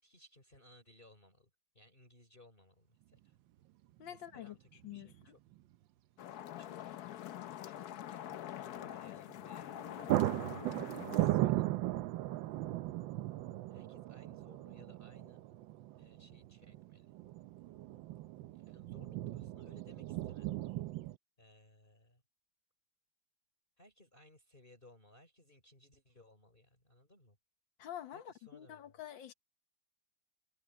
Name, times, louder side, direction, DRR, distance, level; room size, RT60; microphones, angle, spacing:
voice 1, 0.0-1.5 1.7-3.4 4.1-5.4 6.6-7.0 7.6-9.8 11.1-11.7 13.7-15.4 15.9-17.1 18.5-20.6 21.4-22.2 23.8-27.4 28.1-28.9, left 1 dB, 25° left, 4.8 m, -62 dB
sound 1, 3.1-3.2 4.8-5.2 5.5-5.6 9.3-9.5 9.8-21.2, right 15 dB, 85° right, 1.4 m, -37 dB
voice 2, 4.0-4.6 4.8-5.1 27.8-29.3, left 11 dB, 85° left, 1.9 m, -47 dB
sound 2, 6.2-11.3, left 11 dB, 65° left, 1.2 m, -45 dB
omnidirectional pair, 2.0 m